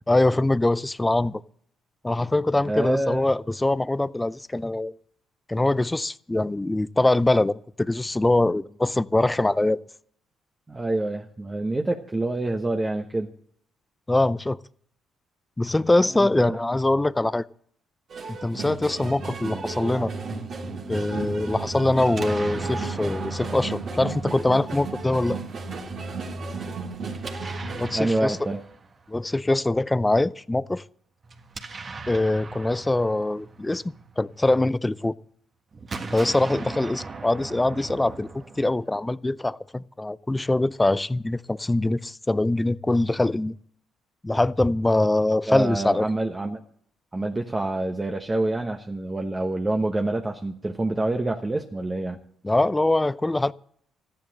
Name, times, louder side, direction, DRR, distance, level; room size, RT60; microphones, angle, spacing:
voice 1, 0.1-1.4 2.0-4.9 5.5-9.8 14.1-14.6 15.6-17.5 18.3-20.1 20.9-25.4 27.7-28.4 29.1-30.8 32.1-35.1 36.1-43.6 44.2-46.1 52.4-53.5, left 2 dB, 15° left, 0.5 m, -23 dB
voice 2, 2.7-3.3 10.7-13.3 16.1-16.6 27.9-28.6 45.5-46.6 47.1-52.2, right 2 dB, 20° right, 1.1 m, -27 dB
sound 1, 18.1-27.9, right 3 dB, 60° right, 2.5 m, -33 dB
Explosion, 22.0-25.0 27.1-29.3 31.2-34.7 35.7-39.1, right 4 dB, 40° right, 1.6 m, -40 dB
14.0 x 10.5 x 6.6 m
supercardioid pair, 70°, 0 cm